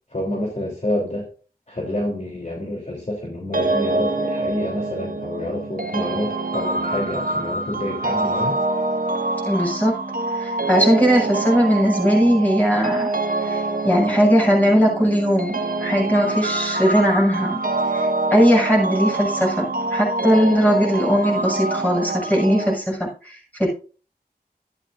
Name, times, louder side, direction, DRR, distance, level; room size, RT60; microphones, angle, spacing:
voice 1, 0.1-1.3 1.7-8.6, left 1 dB, 45° left, -1 dB, 3.3 m, -28 dB
sound 1, 3.5-22.7, right 2 dB, 60° right, 1.3 m, -25 dB
voice 2, 9.5-10.0 10.3-13.1 13.4-17.6 17.9-23.7, equal, 10° left, -2 dB, 7.0 m, -19 dB
13.5 x 11.0 x 2.6 m, 0.36 s
wide cardioid pair, 45°, 17 cm